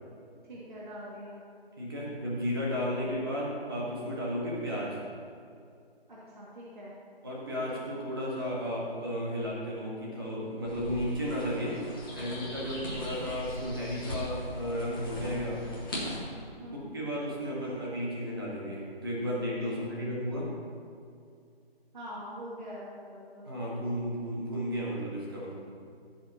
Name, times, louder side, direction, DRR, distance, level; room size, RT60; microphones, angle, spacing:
voice 1, 0.4-1.4 2.9-3.1 6.1-6.9 16.6-17.0 19.7-20.1 21.9-23.5, equal, 50° right, -8 dB, 2.3 m, -44 dB
voice 2, 1.8-5.0 7.2-11.8 12.1-15.6 16.9-20.5 23.5-25.5, equal, 20° right, -5 dB, 1.6 m, -33 dB
sound 1, 10.6-16.2, equal, 20° left, 1.6 m, -39 dB
15.5 x 7.5 x 3.0 m, 2.3 s
figure-of-eight pair, 175°, 31 cm